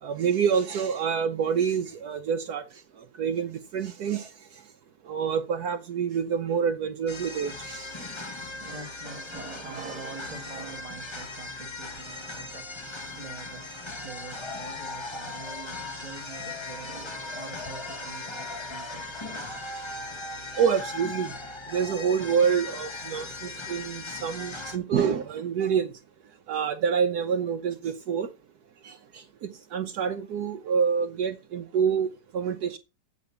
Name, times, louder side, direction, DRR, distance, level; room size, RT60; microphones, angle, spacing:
voice 1, 0.0-2.6 3.2-4.3 5.1-8.1 20.6-21.3 21.7-25.9 26.5-28.3 28.8-32.8, right 7 dB, 70° right, 1.2 m, -27 dB
sound 1, 7.1-24.8, left 3 dB, 20° left, 1.0 m, -38 dB
voice 2, 8.5-12.7 13.1-19.4, right 4 dB, 20° right, 1.5 m, -44 dB
8.4 x 5.3 x 7.0 m
omnidirectional pair, 1.8 m